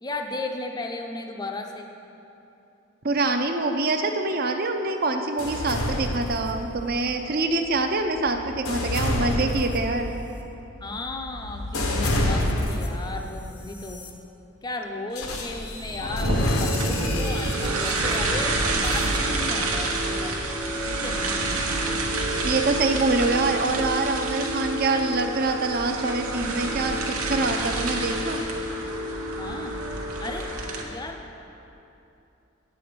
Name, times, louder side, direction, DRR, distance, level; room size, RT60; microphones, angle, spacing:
voice 1, 0.0-1.9 10.8-14.0 14.6-18.6 18.8-20.4 20.9-21.8 29.4-29.8 30.2-30.5 30.8-31.4, left 2 dB, 20° left, 3 dB, 0.5 m, -35 dB
voice 2, 3.0-10.1 22.4-28.4, right 3 dB, 45° right, 5 dB, 0.6 m, -25 dB
sound 1, 5.4-7.0 7.6-13.1 13.7-14.1 15.2-19.2, left 1 dB, 85° left, 1.1 m, -29 dB
sound 2, 16.2-30.8, right 2 dB, 85° right, 1.1 m, -27 dB
9.5 x 7.7 x 5.1 m, 2.8 s
head